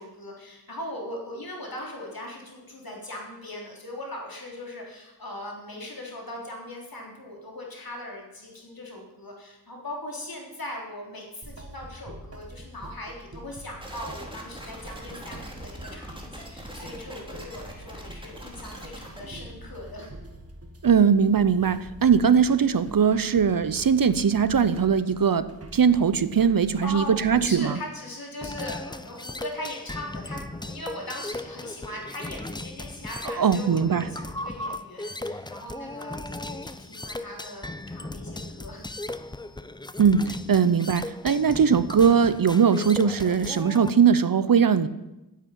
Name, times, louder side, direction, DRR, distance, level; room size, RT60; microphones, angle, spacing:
voice 1, 0.0-20.1 26.8-38.8, left 1 dB, 60° left, -1 dB, 3.7 m, -39 dB
sound 1, 11.4-27.5, right 1 dB, 35° right, 1.7 m, -45 dB
sound 2, 13.8-19.2, right 1 dB, 10° right, 2.7 m, -42 dB
voice 2, 20.8-25.5 25.7-27.8 33.4-34.1 40.0-44.9, right 7 dB, 60° right, 15 dB, 0.6 m, -20 dB
sound 3, 28.4-43.9, left 2 dB, 10° left, 0.5 m, -37 dB
10.0 x 8.1 x 9.2 m, 0.99 s
wide cardioid pair, 65°, 40 cm